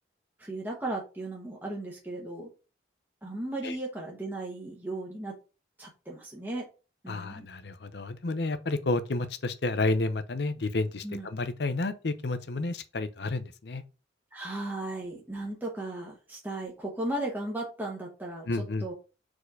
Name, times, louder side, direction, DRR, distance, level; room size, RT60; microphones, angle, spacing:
voice 1, 0.4-2.5 3.2-5.3 5.8-6.7 7.0-7.5 11.0-11.3 14.3-18.9, right 2 dB, 10° right, 1.2 m, -36 dB
voice 2, 7.1-13.8 18.5-18.9, left 2 dB, 60° left, 0.6 m, -31 dB
4.8 x 4.2 x 4.8 m
head